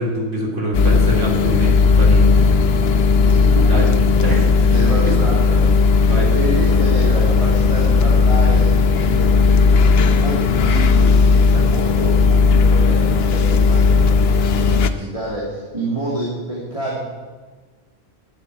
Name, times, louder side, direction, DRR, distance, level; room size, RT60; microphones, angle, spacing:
voice 1, 0.0-2.3 2.6-2.7 3.7-3.9 4.2-5.1 6.0-6.3, right 1 dB, 75° right, -2 dB, 3.6 m, -25 dB
sound 1, 0.7-14.9, left 4 dB, 60° left, 0.9 m, -15 dB
voice 2, 3.3-3.9 4.7-5.6 6.2-17.0, right 1 dB, 25° right, -7 dB, 2.6 m, -28 dB
11.5 x 7.3 x 9.7 m, 1.4 s
omnidirectional pair, 1.3 m